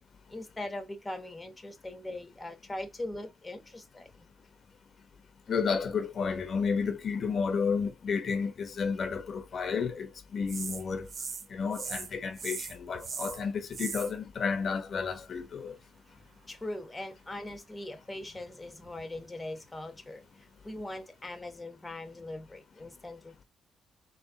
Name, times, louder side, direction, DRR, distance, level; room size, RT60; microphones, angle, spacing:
voice 1, 0.3-4.3 16.5-23.4, left 1 dB, 15° left, 1.1 m, -41 dB
voice 2, 5.5-11.1 11.5-15.8, left 5 dB, 50° left, 1.0 m, -31 dB
sound 1, 10.5-11.5 11.7-12.1 12.4-14.1 18.2-19.2 19.7-19.8, right 5 dB, 45° right, 0.9 m, -39 dB
4.2 x 3.2 x 3.7 m
cardioid pair, 90°, 0 cm